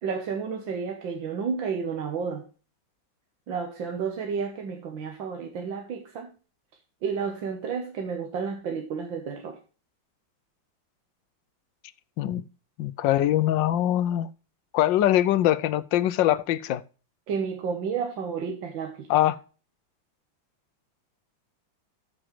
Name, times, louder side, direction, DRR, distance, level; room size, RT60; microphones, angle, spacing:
voice 1, 0.0-2.4 3.5-6.3 7.0-9.6 17.3-19.1, right 6 dB, 80° right, 1.9 m, -31 dB
voice 2, 12.8-14.3 14.7-16.8 19.1-19.4, left 12 dB, 75° left, 1.3 m, -23 dB
13.5 x 6.2 x 3.2 m
omnidirectional pair, 2.1 m